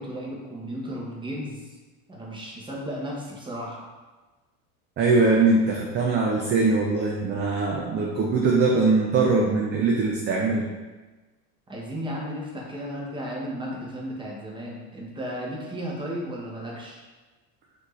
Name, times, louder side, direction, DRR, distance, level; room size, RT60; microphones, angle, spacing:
voice 1, 0.0-1.7 2.1-3.9 11.7-17.0, equal, 10° right, -3 dB, 0.9 m, -34 dB
voice 2, 5.0-10.7, right 3 dB, 25° right, -1 dB, 0.4 m, -22 dB
4.3 x 2.7 x 3.1 m, 1.2 s
supercardioid pair, 120°, 40 cm